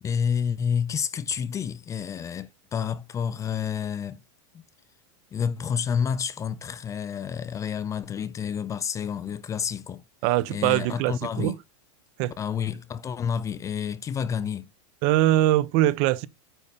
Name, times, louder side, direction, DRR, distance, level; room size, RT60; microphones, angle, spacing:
voice 1, 0.0-4.2 5.3-10.0 10.5-11.6 12.4-14.7, left 7 dB, 20° left, 0.5 m, -29 dB
voice 2, 10.2-11.5 12.2-12.3 15.0-16.3, right 14 dB, 50° right, 0.9 m, -22 dB
9.2 x 4.0 x 7.0 m
supercardioid pair, 135°, 15 cm